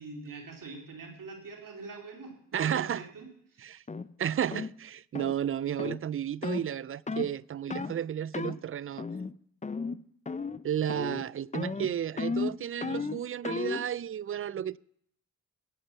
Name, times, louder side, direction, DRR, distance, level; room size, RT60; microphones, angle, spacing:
voice 1, 0.0-3.7, right 3 dB, 75° right, 2.9 m, -44 dB
voice 2, 2.5-3.0 3.6-3.8 4.2-9.1 10.6-14.8, right 9 dB, 40° right, 0.4 m, -32 dB
sound 1, 3.9-4.1 4.5-4.7 5.1-5.4 5.8-6.0 6.4-6.7 7.1-7.3 7.7-8.0 8.3-8.6 9.0-9.3 9.6-10.0 10.3-10.6 10.9-11.2 11.5-13.9, left 4 dB, 20° left, 0.6 m, -34 dB
13.5 x 8.9 x 6.9 m
cardioid pair, 50°, 33 cm